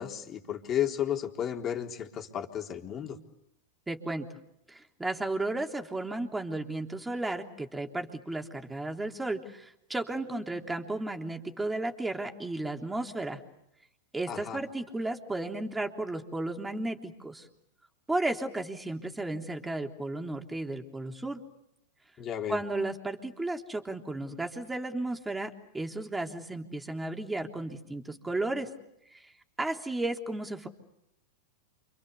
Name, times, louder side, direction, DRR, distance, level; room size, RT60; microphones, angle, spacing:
voice 1, 0.0-3.2 14.3-14.6 22.2-22.6, left 10 dB, 35° left, 2 dB, 4.0 m, -33 dB
voice 2, 3.9-4.3 4.7-13.4 14.1-17.5 18.1-21.4 22.5-28.7 29.1-29.3 29.6-30.7, right 2 dB, 10° right, 3 dB, 3.4 m, -34 dB
29.5 x 26.5 x 6.9 m, 0.82 s
hypercardioid pair, 95°, 0 cm